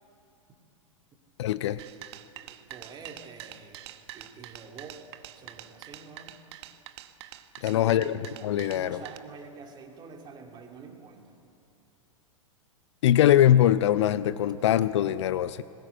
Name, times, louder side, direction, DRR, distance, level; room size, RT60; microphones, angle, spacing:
voice 1, 1.4-1.8 7.6-8.1 8.4-9.0 13.0-15.6, left 11 dB, 55° left, 16 dB, 0.6 m, -22 dB
sound 1, 1.8-9.2, right 13 dB, 50° right, 1.1 m, -45 dB
voice 2, 2.4-3.9 4.1-5.0 5.3-6.3 7.7-8.3 8.7-11.4, right 5 dB, 25° right, 3 dB, 2.7 m, -47 dB
20.5 x 19.5 x 8.8 m, 2.6 s
figure-of-eight pair, 100°, 17 cm